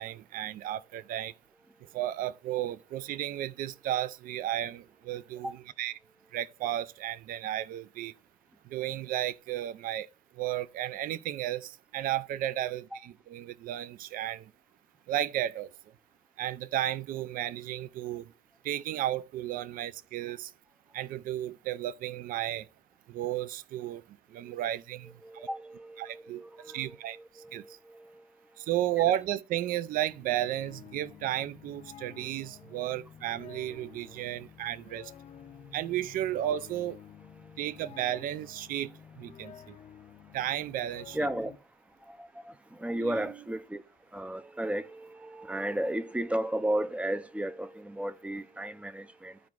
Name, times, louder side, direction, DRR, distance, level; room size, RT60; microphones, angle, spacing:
voice 1, 0.0-1.3 1.9-5.9 6.3-8.1 8.7-10.1 10.4-14.5 15.1-15.7 16.4-18.3 18.6-20.5 20.9-22.7 23.1-25.1 26.0-27.8 28.6-35.1 35.7-37.0 37.6-38.9 39.2-39.8 40.3-41.2 42.9-43.2, right 12 dB, 70° right, 0.4 m, -33 dB
voice 2, 25.2-28.3 32.6-32.9 33.7-33.8 37.4-37.7 41.1-41.5 42.1-43.8 44.1-49.4, right 1 dB, 10° right, 0.4 m, -35 dB
sound 1, 29.8-41.6, left 9 dB, 50° left, 0.5 m, -51 dB
13.5 x 4.7 x 2.4 m
cardioid pair, 130°, 15 cm